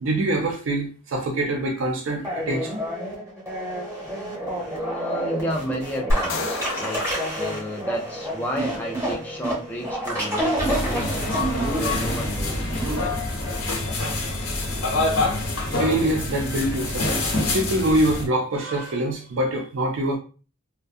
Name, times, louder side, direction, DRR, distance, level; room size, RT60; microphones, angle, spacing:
voice 1, 0.0-2.8 15.5-17.3 17.5-20.2, right 1 dB, 65° right, 0.4 m, -25 dB
sound 1, 2.2-13.0, right 1 dB, 15° right, 0.8 m, -29 dB
voice 2, 4.7-7.0 7.3-11.2 11.7-12.9, equal, 10° left, 0.4 m, -32 dB
sound 2, 6.1-8.5, left 1 dB, 65° left, 0.5 m, -30 dB
sound 3, 10.6-18.3, left 2 dB, 90° left, 0.9 m, -26 dB
2.5 x 2.1 x 2.4 m
head